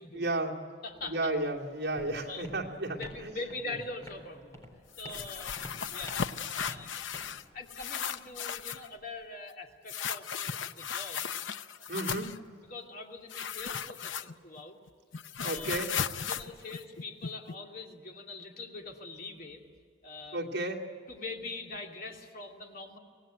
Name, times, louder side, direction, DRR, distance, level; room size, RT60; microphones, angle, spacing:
voice 1, 0.1-0.6 1.0-3.3 11.9-12.3 15.4-15.9 20.3-20.8, right 2 dB, 60° right, -1 dB, 2.7 m, -33 dB
voice 2, 0.8-1.3 2.2-2.5 2.9-4.6 5.0-5.6 5.9-6.2 6.5-6.9 7.5-11.3 11.8-11.9 12.7-14.8 15.4-15.8 16.3-19.6 20.0-20.4 21.1-23.0, left 3 dB, 50° left, 1 dB, 2.7 m, -43 dB
Walk footsteps, 1.3-9.2, equal, 15° left, 3.7 m, -51 dB
sound 1, 4.9-7.4 7.7-8.9 9.9-12.4 13.3-14.6 14.9-17.5, left 7 dB, 75° left, 0.7 m, -36 dB
25.0 x 18.0 x 9.2 m, 2.2 s
head